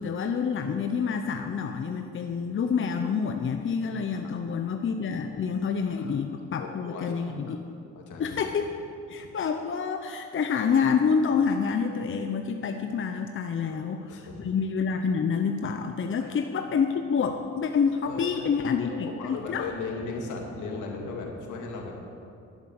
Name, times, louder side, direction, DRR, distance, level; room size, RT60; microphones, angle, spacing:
voice 1, 0.0-7.6 8.2-8.8 9.1-19.7, left 6 dB, 40° left, 6 dB, 0.8 m, -28 dB
voice 2, 6.6-7.5 7.9-8.4 13.6-14.5 16.2-16.4 18.1-18.5 18.8-22.0, left 4 dB, 80° left, 0 dB, 2.4 m, -38 dB
11.5 x 11.0 x 6.6 m, 2.5 s
cardioid pair, 90°, 30 cm